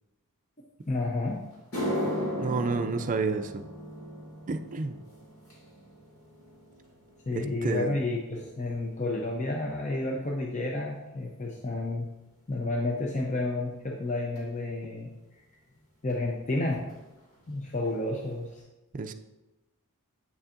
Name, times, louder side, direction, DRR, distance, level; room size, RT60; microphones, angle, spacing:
voice 1, 0.9-1.4 7.3-12.1 12.5-15.1 16.0-16.8 17.5-18.6, left 2 dB, 35° left, 0 dB, 0.7 m, -31 dB
sound 1, 1.0-1.1 1.5-10.0 10.3-10.8 11.5-11.6 14.4-14.5 16.1-16.2 16.4-16.6 16.9-17.4 17.8-17.9 18.5-18.6, equal, 70° left, 2.4 m, -37 dB
voice 2, 2.3-3.6 4.5-5.0 7.3-7.9 18.9-19.1, right 4 dB, 35° right, 8 dB, 0.4 m, -30 dB
8.3 x 7.0 x 2.5 m, 1.0 s
head